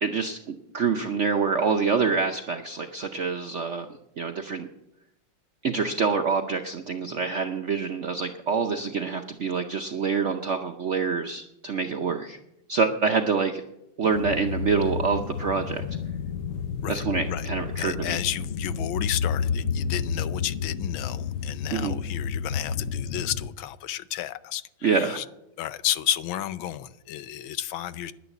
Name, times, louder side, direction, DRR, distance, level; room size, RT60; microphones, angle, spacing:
voice 1, 0.0-3.9 4.2-4.7 5.6-12.4 12.7-13.6 14.0-15.8 16.9-18.2 21.7-22.0 24.8-25.2, right 5 dB, 65° right, 5 dB, 0.7 m, -26 dB
sound 1, 14.0-23.5, left 6 dB, 70° left, 0.7 m, -30 dB
voice 2, 17.8-25.2 25.6-28.1, left 12 dB, 85° left, 14 dB, 1.5 m, -32 dB
10.5 x 10.5 x 8.2 m, 0.86 s
omnidirectional pair, 2.1 m